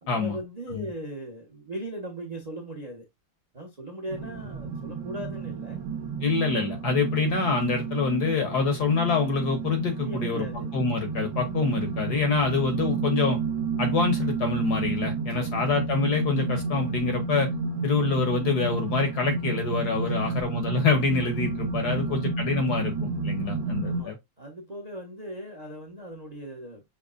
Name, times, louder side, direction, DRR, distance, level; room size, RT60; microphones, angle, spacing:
voice 1, 0.0-3.1 3.5-5.8 10.0-10.7 15.1-15.6 17.7-18.0 20.0-20.4 21.8-22.2 23.8-26.8, right 1 dB, 35° right, 0.6 m, -39 dB
sound 1, 4.1-24.0, right 4 dB, 60° right, 1.5 m, -31 dB
voice 2, 6.2-10.4 10.7-13.4 13.8-17.5 17.8-24.2, left 4 dB, 60° left, 1.2 m, -26 dB
6.3 x 2.9 x 2.4 m
omnidirectional pair, 2.4 m